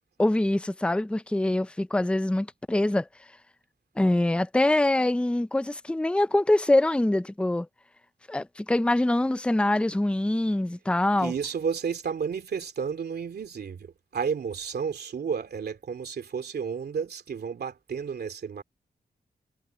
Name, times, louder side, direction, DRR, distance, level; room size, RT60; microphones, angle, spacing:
voice 1, 0.2-3.1 4.0-7.7 8.3-11.3, left 1 dB, 5° left, 0.6 m, -24 dB
voice 2, 11.2-18.6, right 6 dB, 70° right, 2.7 m, -32 dB
cardioid pair, 70°, 17 cm